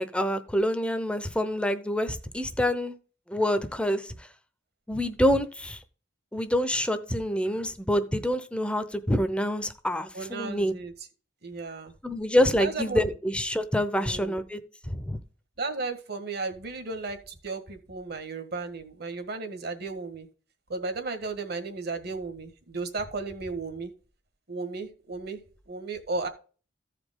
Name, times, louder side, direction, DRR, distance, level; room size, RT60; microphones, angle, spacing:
voice 1, 0.0-2.9 3.3-4.1 4.9-5.8 6.3-10.7 12.0-14.6 14.9-15.2, equal, 5° left, 0.7 m, -26 dB
voice 2, 10.1-10.9 11.4-11.9 12.6-13.0 14.0-14.3 15.6-20.3 20.7-23.9 24.5-25.4 25.7-26.3, right 3 dB, 55° right, 1.6 m, -34 dB
15.0 x 5.0 x 3.8 m
head